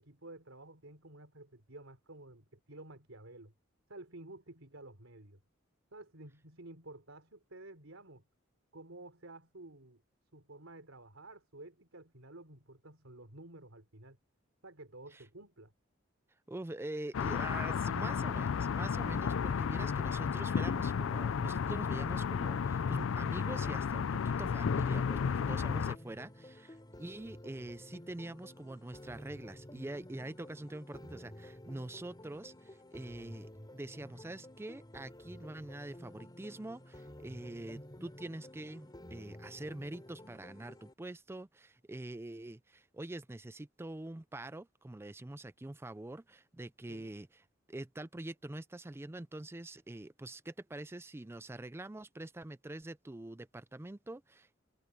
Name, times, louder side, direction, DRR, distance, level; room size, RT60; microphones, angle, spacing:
voice 1, 0.0-3.5 3.9-5.4 5.9-8.2 8.7-10.0 10.3-14.2 14.6-15.7 46.9-47.1, right 2 dB, 80° right, 3.9 m, -52 dB
voice 2, 16.5-54.6, right 1 dB, 10° right, 0.4 m, -45 dB
sound 1, 17.1-26.0, left 6 dB, 75° left, 0.4 m, -33 dB
sound 2, 24.9-40.9, left 1 dB, 20° left, 3.4 m, -52 dB
head